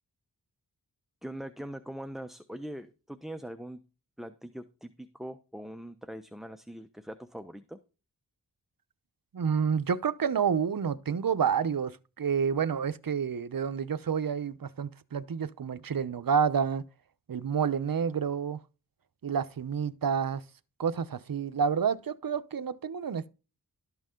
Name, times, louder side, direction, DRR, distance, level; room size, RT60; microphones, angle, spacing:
voice 1, 1.2-3.8 4.2-7.8, right 1 dB, ahead, 0.9 m, -42 dB
voice 2, 9.3-16.8 17.3-18.6 19.2-20.4 20.8-23.3, right 7 dB, 60° right, 0.8 m, -29 dB
12.5 x 8.1 x 3.8 m
wide cardioid pair, 60°, 38 cm